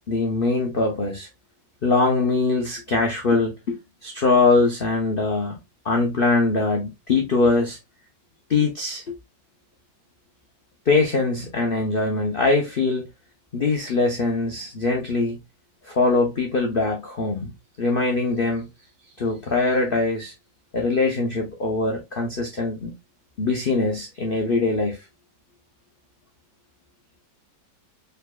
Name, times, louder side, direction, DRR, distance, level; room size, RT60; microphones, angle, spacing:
voice 1, 0.1-1.3 1.8-5.6 5.8-7.8 8.5-9.2 10.9-13.1 13.5-15.4 15.9-17.5 17.8-18.7 19.2-20.3 20.7-22.9 23.4-25.0, left 3 dB, 65° left, 0.5 m, -22 dB
4.6 x 3.9 x 2.3 m
omnidirectional pair, 2.1 m